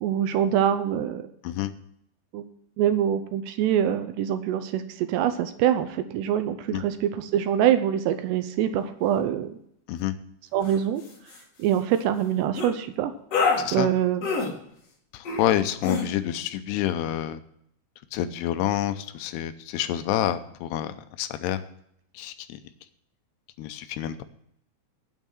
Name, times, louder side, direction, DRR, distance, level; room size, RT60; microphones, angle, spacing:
voice 1, 0.0-1.3 2.3-2.5 2.8-9.5 10.5-11.0 11.6-13.1 13.7-14.2, right 10 dB, 80° right, 10 dB, 2.7 m, -24 dB
sound 1, 10.6-10.8 11.1-11.4 12.5-12.7 13.3-13.6 14.2-14.5 15.2-15.5 15.8-16.0, left 4 dB, 45° left, 2.4 m, -26 dB
voice 2, 13.6-13.9 15.1-17.4 18.1-21.6 22.1-22.6 23.6-24.2, left 12 dB, 80° left, 11 dB, 2.5 m, -28 dB
9.2 x 8.3 x 7.8 m, 0.70 s
omnidirectional pair, 5.2 m